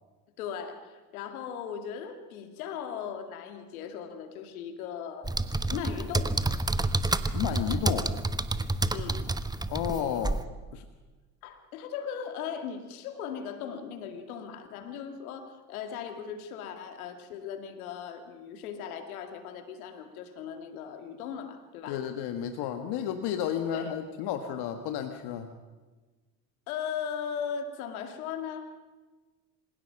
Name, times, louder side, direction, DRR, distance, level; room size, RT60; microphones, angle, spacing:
voice 1, 0.4-5.3 5.6-6.4 8.9-9.2 11.4-22.0 23.7-23.9 26.7-28.7, left 7 dB, 85° left, 7 dB, 2.3 m, -38 dB
sound 1, 5.2-10.4, right 2 dB, 10° right, 1.0 m, -29 dB
voice 2, 7.3-8.1 9.7-10.4 10.7-10.8 21.9-25.5, left 9 dB, 65° left, 7 dB, 1.6 m, -32 dB
27.0 x 17.0 x 5.9 m, 1.3 s
hypercardioid pair, 75°, 42 cm